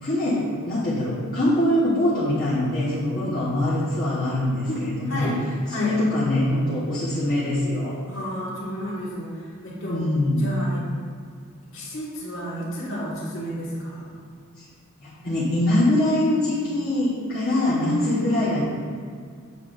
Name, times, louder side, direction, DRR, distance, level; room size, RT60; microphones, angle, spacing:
voice 1, 0.0-5.3 5.8-7.9 9.8-10.4 14.6-14.7 15.0-18.6, left 1 dB, 40° left, -10 dB, 1.1 m, -23 dB
voice 2, 4.7-5.4 5.7-6.0 8.1-10.0 10.4-10.8 11.7-14.1 17.7-18.2, equal, 60° left, -7 dB, 1.7 m, -31 dB
7.1 x 6.9 x 2.5 m, 2.1 s
head